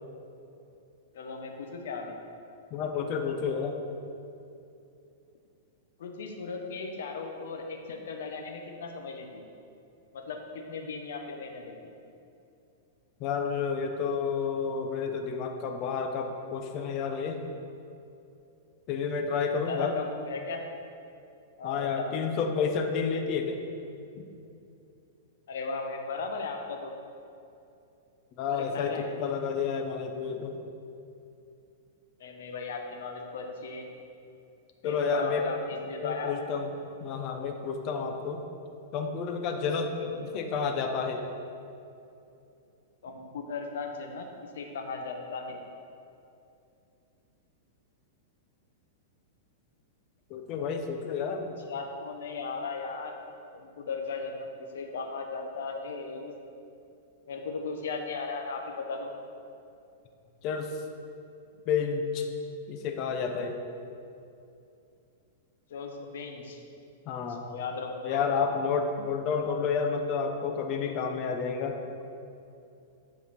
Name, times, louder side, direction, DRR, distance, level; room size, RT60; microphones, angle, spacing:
voice 1, 1.1-2.2 6.0-9.4 10.1-11.9 19.7-20.6 21.6-22.1 25.5-26.9 28.5-29.3 32.2-33.9 34.8-36.3 40.0-40.1 43.0-44.3 44.5-45.6 51.7-53.2 53.5-54.5 54.7-56.3 57.3-59.1 65.7-66.6 67.3-68.3 69.4-69.6, left 4 dB, 75° left, 3 dB, 1.0 m, -37 dB
voice 2, 2.7-3.8 13.2-17.4 18.9-19.9 21.6-23.6 24.1-24.3 28.4-30.6 34.8-35.4 36.0-36.7 37.0-38.4 38.9-39.9 40.2-41.2 50.3-51.5 60.4-60.8 61.7-62.3 62.7-63.6 67.1-67.4 68.0-71.8, left 5 dB, 35° left, 4 dB, 0.7 m, -30 dB
10.0 x 4.1 x 4.2 m, 2.6 s
supercardioid pair, 150°, 0 cm